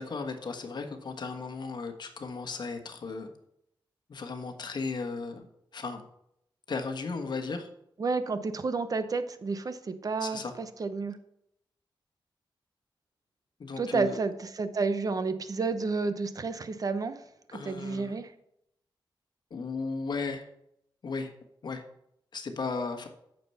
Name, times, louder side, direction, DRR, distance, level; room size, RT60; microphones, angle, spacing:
voice 1, 0.0-3.3 4.1-5.5 5.7-6.0 6.7-7.7 10.2-10.5 13.6-14.1 17.5-18.2 19.5-20.4 21.0-21.3 21.6-21.8 22.3-23.1, left 4 dB, 55° left, 6 dB, 1.4 m, -35 dB
voice 2, 8.0-11.2 13.8-17.2 17.5-18.3, right 4 dB, 45° right, 11 dB, 0.8 m, -31 dB
9.1 x 6.8 x 5.6 m, 0.76 s
wide cardioid pair, 130°, 9 cm